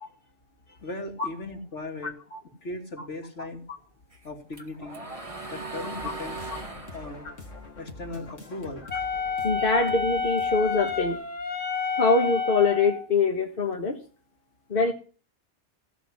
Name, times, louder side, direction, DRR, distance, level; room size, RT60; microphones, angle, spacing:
voice 1, 0.7-2.1 2.6-3.6 4.2-5.0 5.4-6.4 6.9-7.3 7.8-8.9, left 2 dB, 70° left, 2 dB, 3.2 m, -38 dB
sound 1, 4.1-8.6 9.0-10.6, right 3 dB, 25° right, 2.2 m, -39 dB
sound 2, 6.0-11.1, left 3 dB, 90° left, 2.8 m, -45 dB
Wind instrument woodwind instrument, 8.9-13.1, left 5 dB, 30° left, 1.8 m, -29 dB
voice 2, 9.4-11.2 12.0-14.0 14.7-14.9, left 3 dB, 50° left, 1 dB, 1.8 m, -24 dB
16.5 x 6.5 x 9.8 m, 0.39 s
omnidirectional pair, 1.3 m